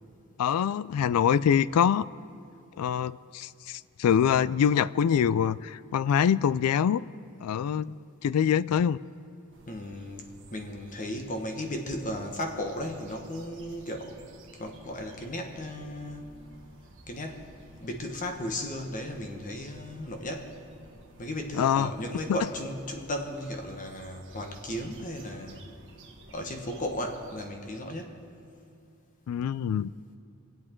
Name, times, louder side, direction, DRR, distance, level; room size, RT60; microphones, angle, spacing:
voice 1, 0.4-2.1 2.8-7.0 7.4-7.9 8.2-9.0 21.5-21.9 22.3-22.4 29.3-29.9, left 8 dB, 80° left, 19 dB, 0.3 m, -24 dB
sound 1, 9.5-27.5, right 1 dB, 60° right, 1.4 m, -53 dB
voice 2, 9.7-10.2 10.5-14.2 14.5-16.3 17.1-17.5 17.8-20.5 21.2-25.6 26.3-28.2, left 1 dB, 35° left, 3 dB, 1.2 m, -35 dB
25.0 x 8.6 x 4.5 m, 2.5 s
head